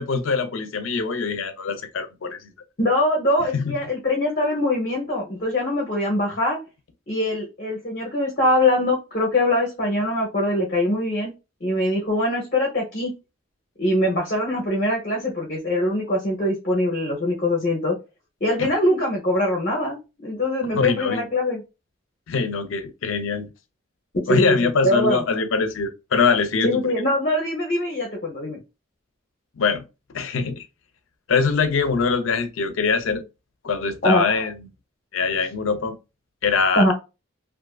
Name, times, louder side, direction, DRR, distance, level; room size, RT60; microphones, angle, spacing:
voice 1, 0.0-2.5 3.5-3.8 18.6-18.7 20.7-21.2 22.3-23.5 24.3-26.8 29.6-29.8 30.1-30.7 31.3-33.2 33.6-34.7 35.1-36.0 36.4-36.9, left 5 dB, 85° left, 0.5 m, -23 dB
voice 2, 2.8-6.6 7.1-11.3 11.6-13.1 13.8-18.0 18.4-20.0 20.2-21.6 24.3-25.2 26.6-28.6 34.0-34.2 36.8-36.9, left 1 dB, 45° left, 0.7 m, -22 dB
2.5 x 2.4 x 2.2 m
head